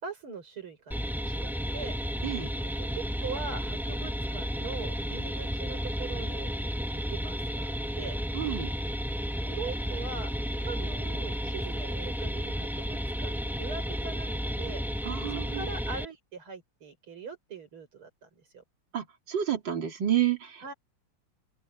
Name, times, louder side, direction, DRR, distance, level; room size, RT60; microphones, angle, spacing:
voice 1, 0.0-2.0 2.6-6.6 6.9-8.2 9.5-10.3 10.6-14.8 15.3-18.6 20.6-20.7, right 5 dB, 80° right, 6.1 m, -42 dB
sound 1, 0.9-16.1, equal, ahead, 2.7 m, -32 dB
voice 2, 8.3-8.7 15.1-15.6 18.9-20.7, right 11 dB, 60° right, 3.5 m, -30 dB
open air
omnidirectional pair, 2.3 m